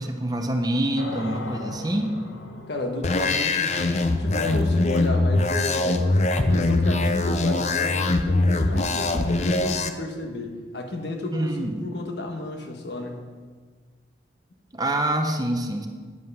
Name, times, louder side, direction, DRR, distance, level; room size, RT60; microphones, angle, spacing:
voice 1, 0.0-2.1 11.3-11.9 14.7-15.9, right 1 dB, 20° right, 5 dB, 0.7 m, -26 dB
sound 1, 1.0-7.9, left 2 dB, 85° left, 1.1 m, -40 dB
voice 2, 2.7-6.1 6.4-13.2, left 2 dB, 65° left, 3 dB, 1.3 m, -32 dB
sound 2, 3.0-9.9, left 2 dB, 35° left, 0.5 m, -22 dB
9.3 x 8.1 x 5.5 m, 1.5 s
head